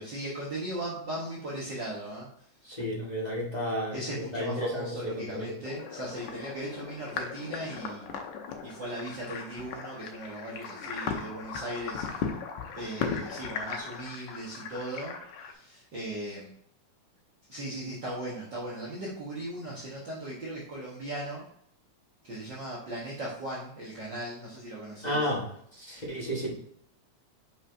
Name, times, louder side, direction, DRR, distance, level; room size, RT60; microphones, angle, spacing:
voice 1, 0.0-2.3 3.9-8.1 8.6-12.3 12.7-15.1 15.4-16.5 17.5-21.4 22.2-25.3, right 1 dB, 45° right, -6 dB, 1.8 m, -38 dB
voice 2, 2.6-4.0 4.3-5.5 25.0-25.4 25.7-26.5, equal, 30° left, -5 dB, 0.8 m, -32 dB
sound 1, 5.6-15.5, left 6 dB, 85° left, 2.3 m, -38 dB
6.9 x 5.7 x 2.7 m, 0.69 s
omnidirectional pair, 3.3 m